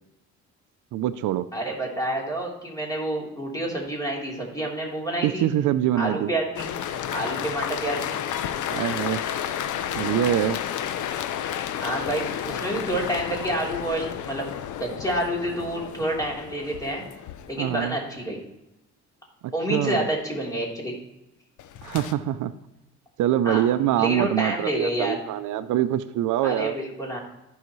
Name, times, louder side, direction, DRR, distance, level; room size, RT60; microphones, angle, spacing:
voice 1, 0.9-1.5 5.2-6.3 8.7-9.2 10.0-10.6 17.6-18.0 19.4-20.0 21.8-22.5 23.2-26.8, right 12 dB, 80° right, 13 dB, 0.5 m, -24 dB
voice 2, 1.5-5.5 5.9-6.7 7.1-8.2 11.8-14.5 14.8-17.1 17.5-18.4 19.5-20.9 23.4-23.6 24.0-25.2 26.4-27.2, right 1 dB, 10° left, -2 dB, 3.4 m, -28 dB
sound 1, 6.6-18.1 21.6-22.1, left 9 dB, 75° left, 0.7 m, -31 dB
14.5 x 5.7 x 3.1 m, 0.91 s
cardioid pair, 90°, 30 cm